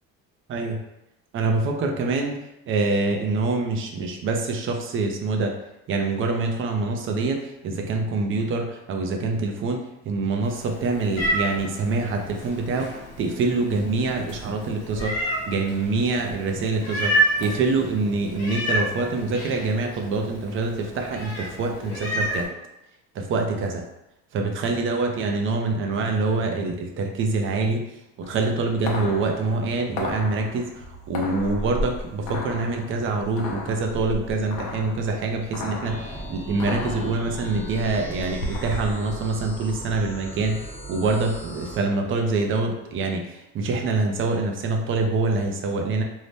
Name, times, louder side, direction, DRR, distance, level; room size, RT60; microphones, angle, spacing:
voice 1, 1.3-2.4 2.7-5.5 5.9-9.8 10.1-12.9 13.2-15.2 15.5-17.1 17.4-22.5 23.2-23.8 24.3-27.9 28.2-30.7 31.1-36.0 36.3-46.0, right 3 dB, 40° right, 3 dB, 0.5 m, -25 dB
Meow, 10.4-22.5, right 1 dB, 50° left, 0.9 m, -30 dB
sound 1, 28.2-39.0, left 2 dB, 80° left, 0.6 m, -35 dB
sound 2, 35.8-41.8, right 1 dB, 10° left, 0.6 m, -38 dB
2.7 x 2.1 x 3.2 m, 0.89 s
cardioid pair, 120°, 31 cm